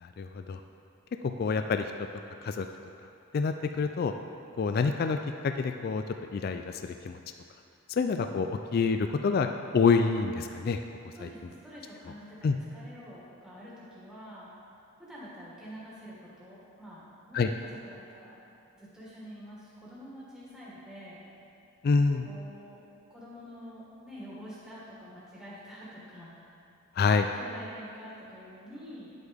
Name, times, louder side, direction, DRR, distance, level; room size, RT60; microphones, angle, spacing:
voice 1, 0.0-0.6 1.4-1.9 2.4-2.7 3.3-4.1 4.6-5.2 5.4-6.0 6.3-7.2 7.9-9.5 9.7-10.8 11.2-11.3 12.4-12.6 17.3-17.5 21.8-22.3 27.0-27.3, left 5 dB, 45° left, 6 dB, 0.3 m, -27 dB
voice 2, 11.1-14.5 15.0-18.4 18.7-21.2 21.9-22.8 23.1-26.5 27.3-29.1, equal, 5° right, -9 dB, 1.7 m, -47 dB
10.0 x 8.0 x 3.5 m, 2.6 s
head